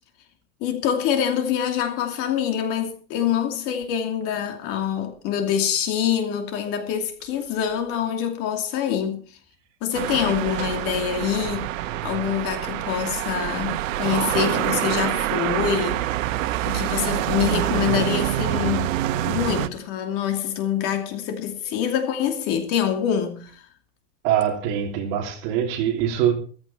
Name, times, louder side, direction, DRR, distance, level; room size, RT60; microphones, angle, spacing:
voice 1, 0.6-9.2 9.8-11.7 12.0-16.1 16.7-18.9 19.3-23.6, left 9 dB, 35° left, 2.7 m, -25 dB
sound 1, 9.9-19.7, right 13 dB, 90° right, 1.3 m, -26 dB
voice 2, 24.2-26.3, right 10 dB, 45° right, 3.3 m, -23 dB
15.0 x 14.0 x 4.5 m
supercardioid pair, 170°, 38 cm